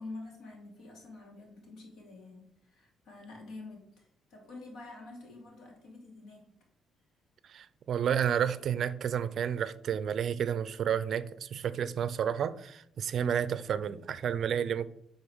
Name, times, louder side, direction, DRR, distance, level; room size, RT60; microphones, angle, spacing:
voice 1, 0.0-4.0 4.3-6.5, left 2 dB, 70° left, 2.6 m, -47 dB
voice 2, 7.5-14.9, right 8 dB, 50° right, 0.4 m, -31 dB
8.5 x 4.0 x 6.1 m
cardioid pair, 145°, 0 cm